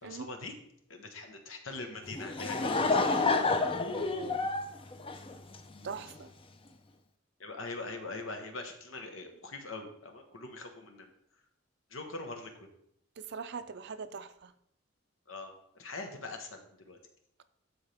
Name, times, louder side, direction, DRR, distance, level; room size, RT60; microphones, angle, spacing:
voice 1, 0.0-0.5 0.9-3.0 6.0-6.1 7.4-11.1 11.9-12.7 15.3-15.5 15.8-16.6 16.9-17.0, left 3 dB, 85° left, 5 dB, 1.3 m, -42 dB
Laughter / Crowd, 2.1-5.9, left 3 dB, 25° left, 0.6 m, -29 dB
voice 2, 3.9-4.4 5.8-6.3 13.3-14.5, right 5 dB, 60° right, 12 dB, 0.5 m, -41 dB
12.0 x 4.4 x 3.5 m, 0.72 s
head